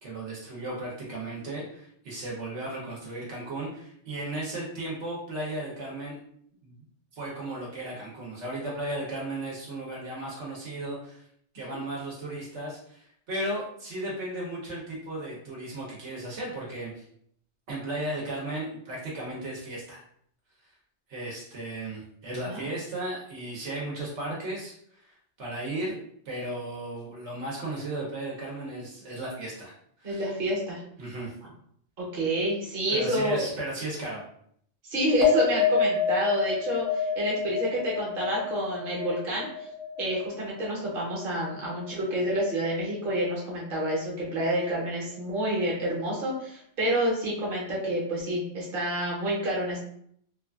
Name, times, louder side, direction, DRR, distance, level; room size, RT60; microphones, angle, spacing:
voice 1, 0.0-6.2 6.6-6.8 7.1-11.2 11.5-17.1 17.7-20.0 21.1-25.9 26.2-29.7 30.0-30.2 31.0-31.3 32.9-34.2, right 1 dB, 75° right, -5 dB, 1.1 m, -35 dB
voice 2, 30.0-30.8 32.0-33.5 34.9-39.7 40.0-49.8, right 1 dB, 50° right, -4 dB, 1.1 m, -28 dB
sound 1, 35.2-41.9 42.2-42.8, left 6 dB, 60° left, 0.8 m, -29 dB
2.9 x 2.3 x 2.3 m, 0.67 s
omnidirectional pair, 1.2 m